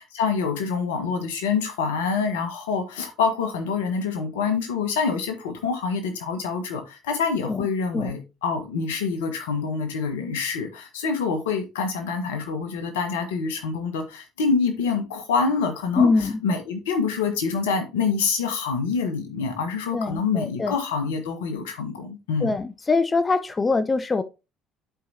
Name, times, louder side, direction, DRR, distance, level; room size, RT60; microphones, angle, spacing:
voice 1, 0.1-22.6, left 5 dB, 80° left, 1.4 m, -26 dB
voice 2, 16.0-16.4 19.9-20.7 22.4-24.2, left 3 dB, 25° left, 0.6 m, -23 dB
11.0 x 4.7 x 2.8 m
hypercardioid pair, 60°, 0 cm